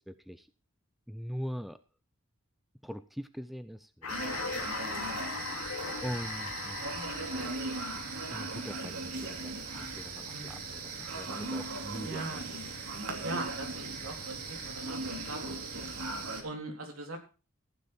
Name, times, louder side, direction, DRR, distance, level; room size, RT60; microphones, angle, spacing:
voice 1, 0.1-0.5 1.1-1.8 2.8-4.9 6.0-7.6 8.3-12.4, equal, ahead, 11 dB, 0.5 m, -42 dB
sound 1, 4.0-8.5, left 4 dB, 90° left, 2.7 m, -39 dB
sound 2, 4.1-16.4, right 3 dB, 85° right, 2.8 m, -38 dB
voice 2, 10.3-10.6 12.0-12.9 13.2-15.9 16.4-17.2, right 2 dB, 70° right, 2 dB, 3.8 m, -41 dB
15.0 x 9.9 x 4.4 m, 0.34 s
head